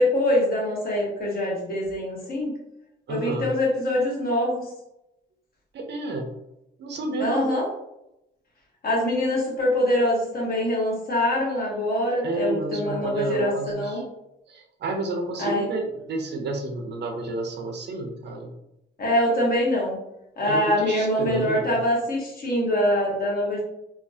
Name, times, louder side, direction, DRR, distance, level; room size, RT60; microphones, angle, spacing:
voice 1, 0.0-2.5 3.1-4.6 7.2-7.6 8.8-14.0 15.4-15.7 19.0-20.0 20.4-23.6, left 1 dB, 50° left, -3 dB, 1.3 m, -24 dB
voice 2, 3.1-3.5 5.7-6.3 6.8-7.5 12.2-14.0 14.5-18.5 20.5-21.8, right 2 dB, 60° right, 3 dB, 0.6 m, -30 dB
3.1 x 2.1 x 2.7 m, 0.88 s
cardioid pair, 90°, 20 cm